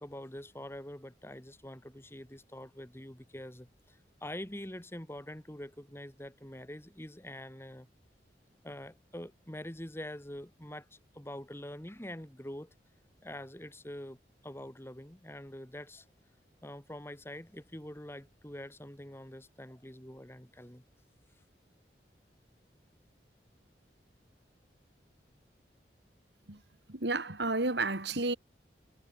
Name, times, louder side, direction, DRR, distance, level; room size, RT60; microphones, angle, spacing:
voice 1, 0.0-7.9 8.6-12.7 13.2-14.2 14.4-16.0 16.6-20.8, left 1 dB, 15° left, 1.7 m, -45 dB
voice 2, 26.9-28.4, right 3 dB, 75° right, 2.9 m, -31 dB
head